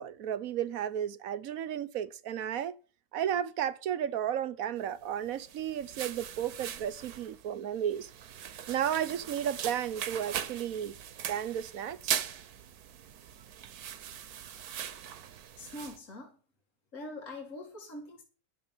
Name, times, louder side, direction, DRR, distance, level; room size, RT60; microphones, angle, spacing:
voice 1, 0.0-2.7 3.1-8.1 8.7-11.0 11.3-12.3, right 10 dB, 70° right, 1.2 m, -33 dB
sound 1, 5.2-16.0, right 9 dB, 90° right, 1.4 m, -40 dB
voice 2, 15.6-16.4 16.9-18.2, left 2 dB, 60° left, 2.7 m, -43 dB
11.5 x 6.8 x 7.3 m
omnidirectional pair, 1.6 m